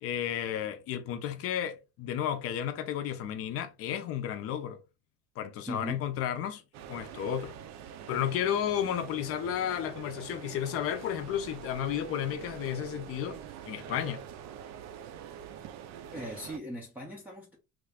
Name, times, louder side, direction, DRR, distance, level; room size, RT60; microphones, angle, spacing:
voice 1, 0.0-4.8 5.4-6.6 6.9-7.5 8.1-13.4 13.7-14.2, left 10 dB, 45° left, 0.5 m, -32 dB
voice 2, 5.7-6.1 16.1-17.5, equal, 5° right, 0.4 m, -39 dB
sound 1, 6.7-16.6, right 9 dB, 55° right, 0.5 m, -45 dB
3.2 x 2.4 x 3.3 m
cardioid pair, 180°, 32 cm